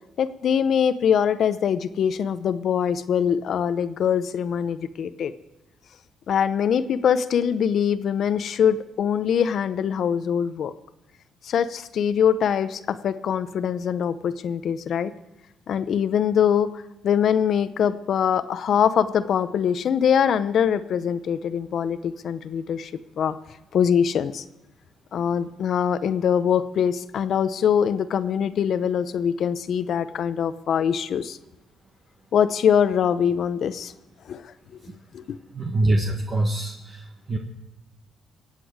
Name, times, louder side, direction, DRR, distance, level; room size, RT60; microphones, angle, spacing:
voice 1, 0.2-5.3 6.3-10.7 11.4-15.1 15.7-16.7 17.0-22.9 23.2-23.3 23.7-24.4 25.1-31.4 32.3-33.9 34.3-34.8 35.1-35.4, left 8 dB, 65° left, 13 dB, 0.7 m, -23 dB
voice 2, 35.5-37.4, right 2 dB, 40° right, 1 dB, 1.5 m, -24 dB
23.5 x 8.4 x 4.9 m, 0.97 s
cardioid pair, 90°, 0 cm